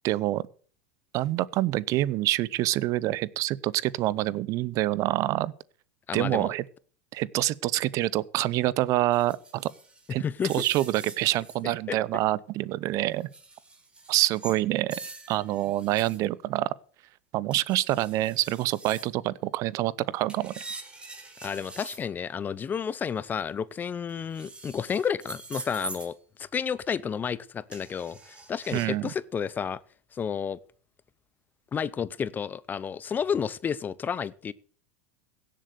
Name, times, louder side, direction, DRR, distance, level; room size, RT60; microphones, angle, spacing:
voice 1, 0.0-0.4 1.1-5.5 6.1-6.6 7.1-9.7 10.1-10.2 10.5-13.3 14.1-15.0 15.3-16.7 17.3-20.5 28.7-29.1, right 16 dB, 50° right, 0.7 m, -26 dB
voice 2, 6.1-6.5 10.2-10.5 11.9-12.0 21.4-29.8 30.1-30.6 31.7-34.5, left 7 dB, 25° left, 0.7 m, -31 dB
sound 1, 9.1-11.6 13.2-14.6 14.9-16.2 17.5-19.1 20.3-22.0 24.1-26.1 27.7-28.8, right 3 dB, 15° right, 4.3 m, -43 dB
16.5 x 7.7 x 6.6 m
hypercardioid pair, 105°, 7 cm